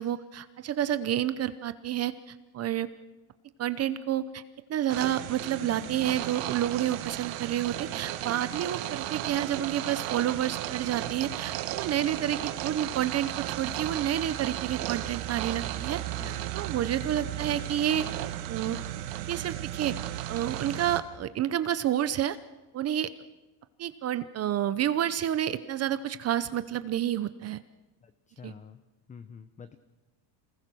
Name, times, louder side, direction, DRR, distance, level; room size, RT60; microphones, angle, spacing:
voice 1, 0.0-2.9 3.6-4.4 4.7-18.0 18.5-18.8 19.3-19.9 20.3-22.4 22.7-23.1 23.8-27.6 28.4-28.5, right 11 dB, 30° right, 13 dB, 0.7 m, -29 dB
sound 1, 4.9-21.0, right 14 dB, 75° right, 2.0 m, -35 dB
voice 2, 28.0-28.8 29.1-29.8, left 6 dB, 15° left, 11 dB, 0.7 m, -47 dB
28.0 x 20.5 x 6.3 m, 1.1 s
cardioid pair, 145°, 50 cm